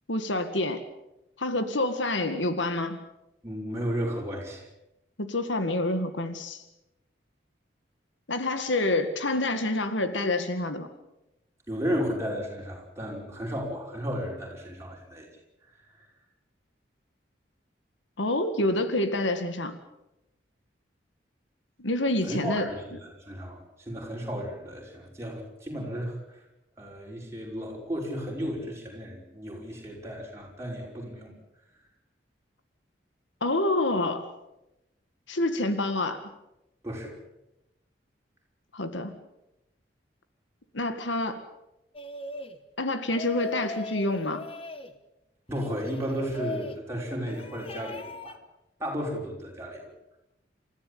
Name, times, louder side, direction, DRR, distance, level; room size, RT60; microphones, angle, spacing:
voice 1, 0.1-0.8 1.4-3.0 5.2-6.6 8.3-10.9 18.2-19.8 21.8-22.7 33.4-34.3 35.3-36.2 38.7-39.1 40.7-41.4 42.8-44.5, left 2 dB, 85° left, 9 dB, 2.0 m, -27 dB
voice 2, 3.4-4.6 11.7-15.3 22.2-26.2 26.8-31.3 36.8-37.2 45.5-48.4 48.8-49.9, equal, 15° right, -1 dB, 5.8 m, -34 dB
sound 1, 41.9-42.6 43.1-44.9 45.5-46.8 47.2-48.4, left 3 dB, 30° left, 1.3 m, -39 dB
28.0 x 15.0 x 8.7 m, 0.92 s
head